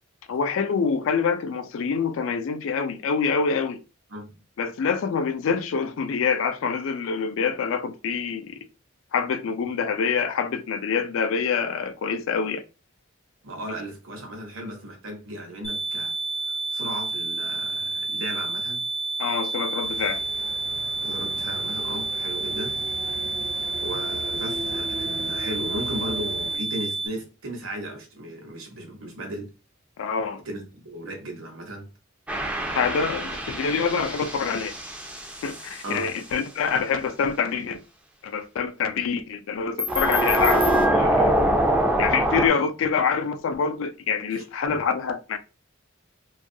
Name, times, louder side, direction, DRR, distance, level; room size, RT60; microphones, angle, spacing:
voice 1, 0.3-3.8 4.6-8.6 9.1-12.6 19.2-20.2 30.0-30.4 32.8-34.7 35.4-37.8 38.2-41.3 42.0-45.4, left 5 dB, 75° left, 0.3 m, -26 dB
voice 2, 4.1-4.4 13.4-16.1 16.5-18.8 21.0-22.8 23.8-29.5 30.4-31.9 35.8-36.1 44.3-44.8, right 1 dB, 85° right, 0.9 m, -36 dB
sound 1, 15.6-27.1, right 3 dB, 30° left, 0.6 m, -29 dB
sound 2, 19.8-26.6, equal, 60° right, 0.6 m, -38 dB
sound 3, 32.3-35.8 39.8-42.5, right 1 dB, 5° right, 0.3 m, -24 dB
2.6 x 2.3 x 2.6 m
head